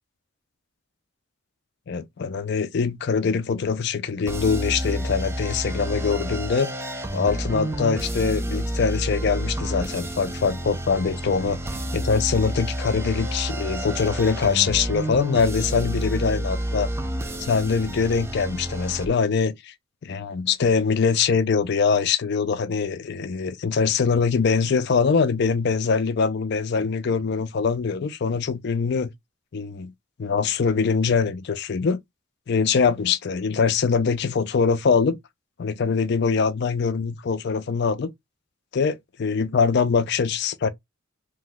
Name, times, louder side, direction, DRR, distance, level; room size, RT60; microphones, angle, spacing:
voice 1, 1.9-6.7 7.1-11.6 11.9-16.9 17.4-19.7 20.0-29.1 29.5-29.9 30.2-32.0 32.5-35.2 35.6-38.1 38.7-40.7, left 5 dB, 55° left, 0.4 m, -23 dB
sound 1, 4.3-19.1, right 1 dB, 10° right, 0.3 m, -29 dB
2.7 x 2.2 x 3.7 m
head